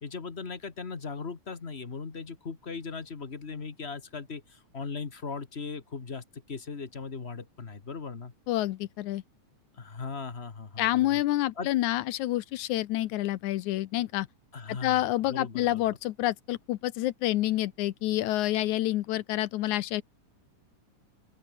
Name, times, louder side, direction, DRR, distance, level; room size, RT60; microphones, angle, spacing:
voice 1, 0.0-8.3 9.7-11.2 11.6-11.7 14.5-15.8, left 4 dB, 35° left, 1.1 m, -38 dB
voice 2, 8.5-9.2 10.8-14.3 14.7-20.0, left 15 dB, 75° left, 2.1 m, -28 dB
open air
omnidirectional pair, 3.7 m